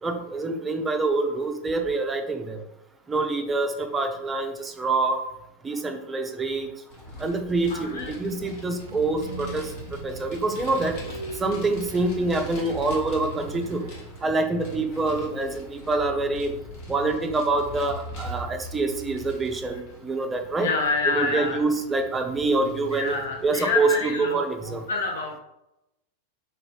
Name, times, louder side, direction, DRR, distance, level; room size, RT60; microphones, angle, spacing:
voice 1, 0.0-2.6 3.1-5.2 5.6-6.7 7.2-9.7 10.0-10.9 11.4-13.9 14.2-16.5 16.9-20.7 21.1-23.1 23.4-24.8, right 3 dB, 15° right, 5 dB, 0.5 m, -26 dB
Vehicle, 6.9-23.8, left 1 dB, 45° left, 1.0 m, -41 dB
voice 2, 7.7-8.2 20.6-21.6 22.9-25.4, left 4 dB, 65° left, 0 dB, 0.5 m, -28 dB
Train, 8.9-14.2, right 2 dB, 70° right, 0.4 m, -42 dB
3.9 x 2.6 x 3.1 m, 0.88 s
figure-of-eight pair, 90°, 0 cm